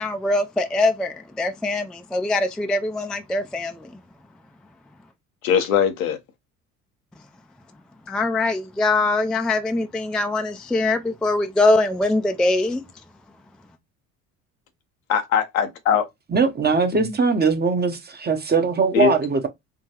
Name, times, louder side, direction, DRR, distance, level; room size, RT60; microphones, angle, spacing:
voice 1, 0.0-3.9 8.1-12.8, left 2 dB, ahead, 0.3 m, -22 dB
voice 2, 5.4-6.2 15.1-16.1 16.9-17.1 18.9-19.1, left 8 dB, 85° left, 0.8 m, -21 dB
voice 3, 16.3-19.5, right 5 dB, 25° right, 0.8 m, -21 dB
3.7 x 2.3 x 2.8 m
hypercardioid pair, 60°, 40 cm